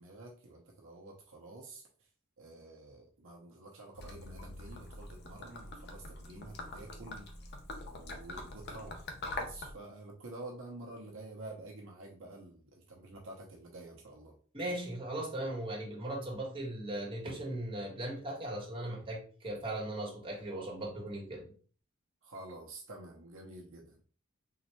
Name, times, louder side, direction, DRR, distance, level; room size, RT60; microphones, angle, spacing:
voice 1, 0.0-2.1 2.4-7.3 7.8-9.1 9.3-14.3 22.2-24.0, right 2 dB, 65° right, -1 dB, 0.7 m, -49 dB
Gurgling / Liquid, 3.9-9.7, left 2 dB, 50° left, 0.7 m, -44 dB
voice 2, 14.5-21.5, right 1 dB, 25° right, -3 dB, 1.4 m, -38 dB
3.9 x 3.1 x 3.0 m, 0.42 s
head